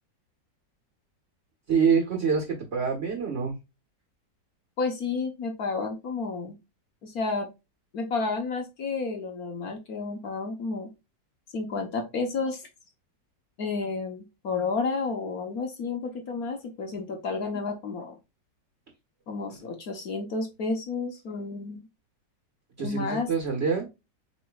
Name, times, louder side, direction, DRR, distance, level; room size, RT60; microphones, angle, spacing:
voice 1, 1.7-3.6 22.8-23.9, right 6 dB, 40° right, 1 dB, 1.6 m, -26 dB
voice 2, 4.8-6.6 7.0-7.5 7.9-10.9 11.5-12.6 13.6-18.2 19.3-21.9 22.8-23.3, left 4 dB, 60° left, 3 dB, 1.4 m, -31 dB
7.3 x 3.1 x 2.3 m, 0.24 s
omnidirectional pair, 1.9 m